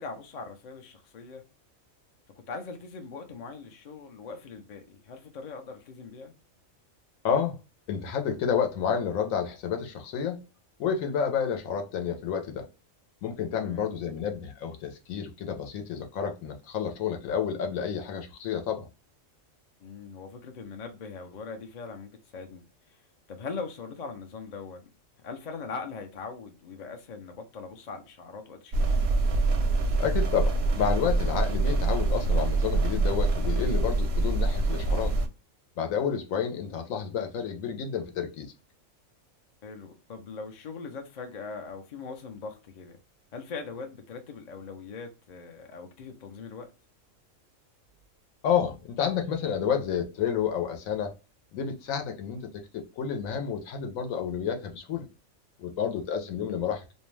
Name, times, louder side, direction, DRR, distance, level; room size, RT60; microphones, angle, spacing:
voice 1, 0.0-1.4 2.5-6.3 13.5-13.9 19.8-23.0 23.3-24.8 25.2-28.9 39.6-43.0 43.3-46.7, left 4 dB, 55° left, 0.5 m, -41 dB
voice 2, 7.2-7.6 7.9-10.4 10.8-12.7 13.2-18.9 30.0-35.1 35.8-38.5 48.4-51.1 51.5-52.5 52.7-55.1 55.6-56.9, left 7 dB, 80° left, 1.0 m, -30 dB
sound 1, 28.7-35.3, right 3 dB, 65° right, 0.7 m, -25 dB
2.6 x 2.1 x 3.1 m
omnidirectional pair, 1.4 m